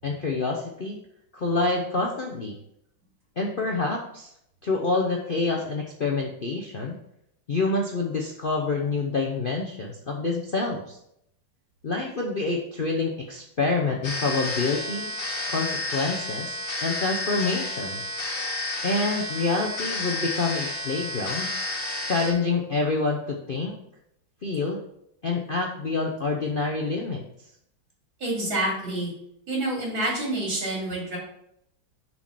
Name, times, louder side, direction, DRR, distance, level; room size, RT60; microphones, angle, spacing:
voice 1, 0.0-1.0 1.3-2.5 3.4-4.3 4.6-6.9 7.5-11.0 11.8-15.1 15.5-18.0 18.8-21.5 22.0-23.8 24.4-24.8 25.2-27.2, left 3 dB, 55° left, 0 dB, 0.6 m, -27 dB
sound 1, 14.0-22.3, left 1 dB, 85° left, 2.4 m, -31 dB
voice 2, 28.2-29.1 29.5-31.2, right 1 dB, 90° right, -3 dB, 3.7 m, -27 dB
6.8 x 4.5 x 5.7 m, 0.75 s
omnidirectional pair, 2.1 m